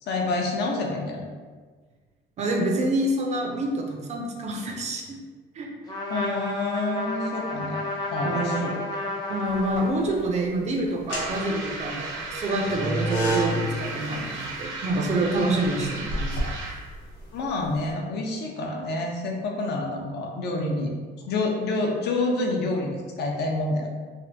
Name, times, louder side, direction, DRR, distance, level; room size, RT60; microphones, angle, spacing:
voice 1, 0.0-1.2 6.1-7.8 8.1-8.8 17.3-20.9 21.2-23.9, left 2 dB, 60° left, 1 dB, 0.6 m, -28 dB
voice 2, 2.4-5.2 5.5-5.7 8.2-8.6 9.3-16.5, right 1 dB, 35° right, 1 dB, 0.4 m, -27 dB
Trumpet, 5.9-10.4, left 2 dB, 20° left, 0.6 m, -32 dB
sound 1, 9.5-10.2 10.9-17.8, right 1 dB, 80° left, 0.9 m, -31 dB
sound 2, 11.1-16.9, right 3 dB, 75° right, 0.7 m, -35 dB
3.3 x 2.5 x 2.6 m, 1.5 s
cardioid pair, 160°, 19 cm